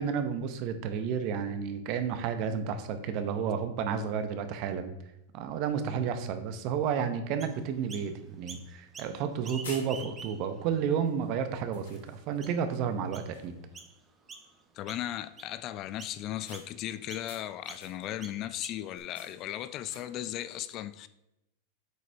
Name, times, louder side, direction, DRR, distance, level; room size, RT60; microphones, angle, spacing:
voice 1, 0.0-4.9 5.3-13.5, right 7 dB, 50° right, 9 dB, 0.9 m, -31 dB
Chirp tweet, 7.4-8.1 8.5-9.1 9.4-10.6 11.2-11.3 11.9-12.0 12.4-12.7 13.1-13.3 13.7-13.9 14.3-14.6 14.9-15.5 16.0-16.2 16.5-16.7 17.1-17.3 17.7-17.8 18.2-19.0, right 5 dB, 25° right, 1.0 m, -46 dB
sound 1, 8.3-8.4 9.1-9.3 9.6-10.4 11.1-11.3 11.7-12.5 12.9-13.1 13.3-13.8 16.5-18.3 18.9-20.4, left 4 dB, 80° left, 2.1 m, -50 dB
voice 2, 14.7-21.1, left 12 dB, 45° left, 13 dB, 0.4 m, -36 dB
8.0 x 5.0 x 3.4 m, 0.89 s
hypercardioid pair, 110°, 0 cm